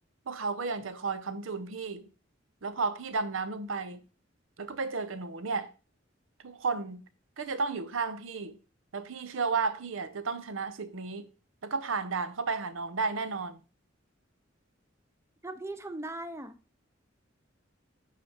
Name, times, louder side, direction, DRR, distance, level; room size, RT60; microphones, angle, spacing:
voice 1, 0.3-2.1 2.6-4.0 4.6-5.7 6.4-7.0 7.4-8.6 8.9-11.3 11.6-13.6, right 4 dB, 90° right, 0.8 m, -33 dB
voice 2, 15.4-16.6, right 2 dB, 15° right, 0.6 m, -38 dB
8.2 x 5.0 x 4.3 m
head